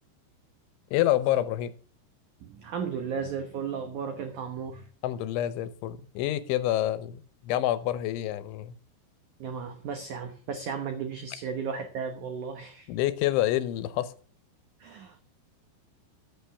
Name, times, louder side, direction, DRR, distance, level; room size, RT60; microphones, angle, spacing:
voice 1, 0.9-1.7 5.0-8.8 12.9-14.1, left 13 dB, 85° left, 3.3 m, -27 dB
voice 2, 2.4-4.9 9.4-12.9 14.8-15.2, right 6 dB, 85° right, 1.7 m, -35 dB
14.0 x 8.6 x 3.5 m
omnidirectional pair, 5.3 m